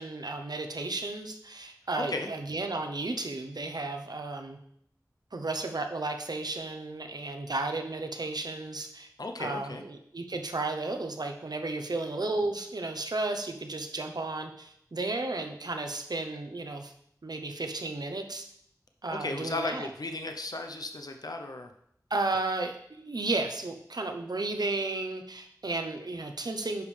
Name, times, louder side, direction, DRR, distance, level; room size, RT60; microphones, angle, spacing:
voice 1, 0.0-4.6 5.3-9.1 9.4-16.9 17.2-18.5 19.0-19.9 22.1-26.8, right 2 dB, 75° right, 5 dB, 0.8 m, -33 dB
voice 2, 2.0-2.3 9.2-9.8 19.1-21.7, left 2 dB, 70° left, 5 dB, 0.7 m, -35 dB
10.5 x 5.2 x 3.3 m, 0.70 s
wide cardioid pair, 45°, 7 cm